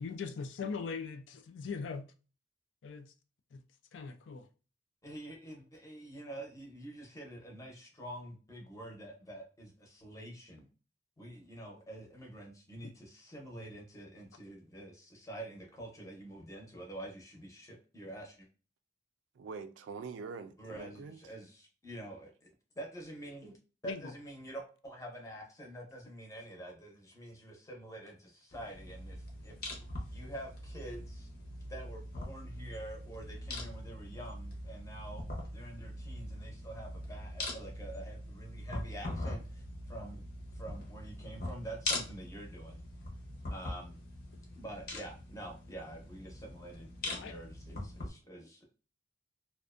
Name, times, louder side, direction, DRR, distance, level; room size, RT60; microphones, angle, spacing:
voice 1, 0.0-2.0 2.8-3.1 3.5-3.6 3.9-4.5 23.8-24.1 47.0-47.3, left 5 dB, 80° left, 0.4 m, -40 dB
voice 2, 5.0-10.7 11.2-18.5 20.6-22.5 22.7-23.6 23.8-29.5 30.1-31.3 31.7-35.2 35.5-40.2 40.5-42.8 43.5-44.0 44.5-48.7, right 1 dB, 20° left, 0.7 m, -47 dB
voice 3, 19.4-21.2, right 5 dB, 85° right, 0.3 m, -44 dB
sound 1, 28.5-48.1, left 1 dB, 55° left, 0.7 m, -42 dB
2.5 x 2.1 x 2.4 m
head